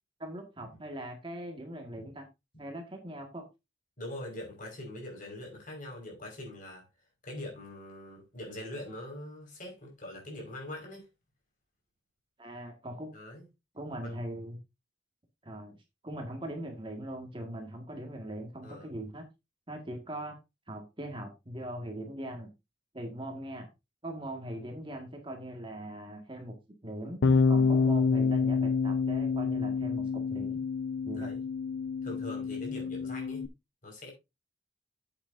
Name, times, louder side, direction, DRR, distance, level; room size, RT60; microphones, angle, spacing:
voice 1, 0.2-2.3 2.6-3.5 12.4-13.1 13.7-14.6 15.4-15.8 16.0-19.3 19.7-20.4 20.7-22.5 22.9-23.7 24.0-26.6 26.8-27.2 27.5-30.6 31.1-31.3, right 1 dB, 30° right, 1.9 m, -40 dB
voice 2, 4.0-6.8 7.2-11.0 13.1-13.5 14.0-14.2 18.6-18.9 31.1-31.4 32.0-33.5 33.8-34.1, left 1 dB, 45° left, 5.2 m, -43 dB
Bass guitar, 27.2-33.5, left 5 dB, 90° left, 0.6 m, -28 dB
10.0 x 8.3 x 2.7 m
head